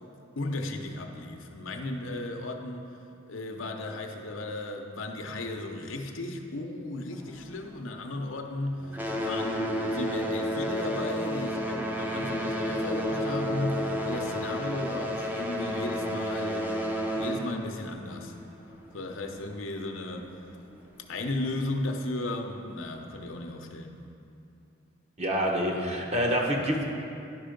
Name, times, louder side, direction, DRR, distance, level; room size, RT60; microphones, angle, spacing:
voice 1, 0.4-2.8 3.3-8.9 9.2-16.8 17.1-18.4 18.9-20.3 21.1-24.0 25.7-26.1, left 2 dB, 80° left, 3 dB, 0.8 m, -35 dB
sound 1, 7.1-8.5 8.8-19.1 19.9-20.0 20.7-20.8 21.4-21.5, equal, 10° right, 0.7 m, -31 dB
voice 2, 25.2-26.8, equal, 35° right, -1 dB, 1.1 m, -27 dB
11.0 x 5.5 x 5.2 m, 2.6 s
head